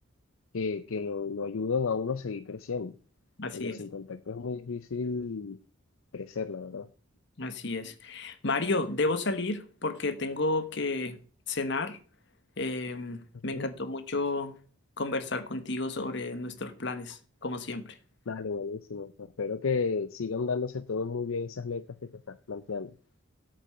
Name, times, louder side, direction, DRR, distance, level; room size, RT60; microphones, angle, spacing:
voice 1, 0.5-2.9 3.5-5.6 6.1-6.9 13.5-13.7 18.3-21.8 22.3-22.9, left 5 dB, 75° left, 0.5 m, -33 dB
voice 2, 3.4-3.8 7.4-11.2 11.5-12.0 12.6-14.5 15.0-18.0, left 2 dB, 55° left, 1.2 m, -32 dB
8.5 x 7.9 x 6.5 m
head